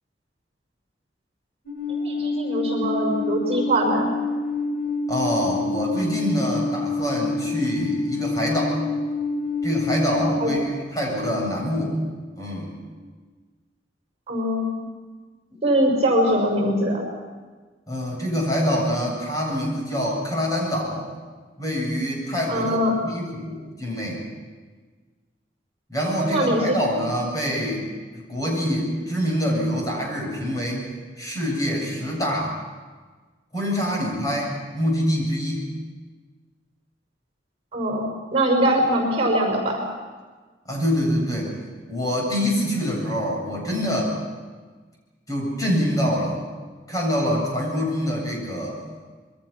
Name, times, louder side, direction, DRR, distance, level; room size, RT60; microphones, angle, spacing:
Alarm, 1.7-10.6, left 3 dB, 65° left, 4.3 m, -27 dB
voice 1, 1.9-4.1 10.4-10.5 14.3-14.7 15.6-17.0 22.5-22.9 26.2-26.8 37.7-39.8, right 1 dB, 35° right, 2 dB, 5.5 m, -22 dB
voice 2, 5.1-8.8 9.6-12.0 12.4-12.8 15.5-15.6 17.9-21.1 21.6-24.2 25.9-27.8 28.1-30.9 31.2-32.5 33.5-35.7 40.7-41.5 41.9-44.2 45.3-46.4 46.9-48.8, equal, 20° left, -2 dB, 7.9 m, -25 dB
27.5 x 23.0 x 6.0 m, 1.4 s
head